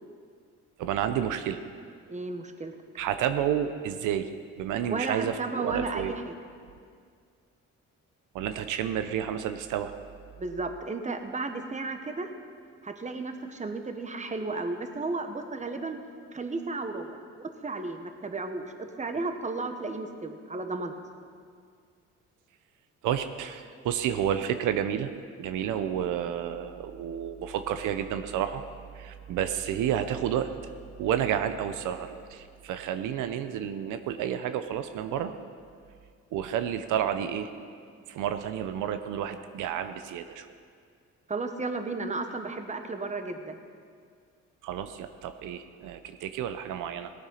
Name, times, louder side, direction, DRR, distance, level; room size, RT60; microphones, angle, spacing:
voice 1, 0.8-1.6 3.0-4.3 4.6-6.1 8.3-9.9 23.0-25.1 25.4-28.6 28.9-30.5 31.0-35.3 36.3-37.5 38.1-40.5 44.6-47.1, right 9 dB, 90° right, 9 dB, 0.7 m, -30 dB
voice 2, 2.1-2.7 4.9-6.4 10.4-12.3 12.8-16.0 16.3-17.2 17.6-20.9 41.3-43.6, right 3 dB, 25° right, 6 dB, 1.2 m, -34 dB
17.5 x 8.9 x 5.7 m, 2.1 s
cardioid pair, 90°, 30 cm